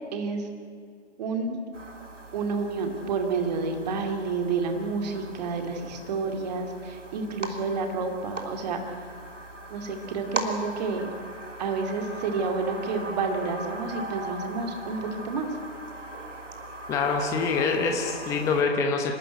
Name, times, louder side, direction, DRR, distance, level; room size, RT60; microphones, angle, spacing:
voice 1, 0.1-0.4 1.2-1.6 2.3-9.0 9.7-11.1 11.6-15.5, right 4 dB, 35° right, 5 dB, 2.5 m, -29 dB
sound 1, 1.7-18.6, right 2 dB, 85° right, 3.2 m, -39 dB
voice 2, 16.9-19.2, left 4 dB, 10° left, 3 dB, 0.9 m, -25 dB
28.0 x 12.5 x 9.3 m, 2.3 s
figure-of-eight pair, 145°, 36 cm